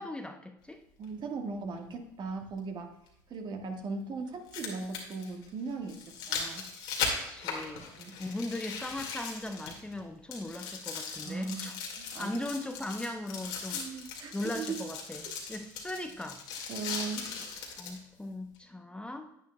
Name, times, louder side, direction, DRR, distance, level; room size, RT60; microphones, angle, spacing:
voice 1, 0.0-0.8 7.0-7.9 8.2-11.7 12.2-13.8 14.3-16.4 17.8-19.3, left 1 dB, 10° left, 5 dB, 0.7 m, -39 dB
sound 1, 1.0-1.1 3.1-3.2 4.3-10.0 10.3-18.0 18.6-18.7, left 5 dB, 70° left, 1.8 m, -38 dB
voice 2, 1.0-2.9 3.3-6.7 8.0-8.2 11.2-12.4 13.7-14.9 16.7-17.4, right 4 dB, 45° right, 3 dB, 1.4 m, -38 dB
10.5 x 9.2 x 2.2 m, 0.78 s
hypercardioid pair, 70°, 10 cm